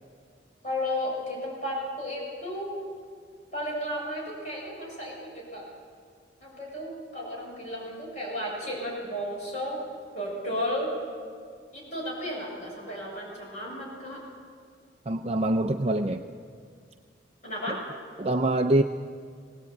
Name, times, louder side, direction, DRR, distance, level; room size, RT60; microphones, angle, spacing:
voice 1, 0.6-2.7 3.5-5.7 6.4-9.8 10.1-10.9 11.7-14.2 15.9-16.0 17.4-17.8, left 1 dB, 40° left, -3 dB, 7.0 m, -33 dB
voice 2, 15.1-16.2 18.2-18.8, right 1 dB, 30° right, 5 dB, 0.6 m, -24 dB
21.0 x 18.5 x 8.5 m, 2.1 s
head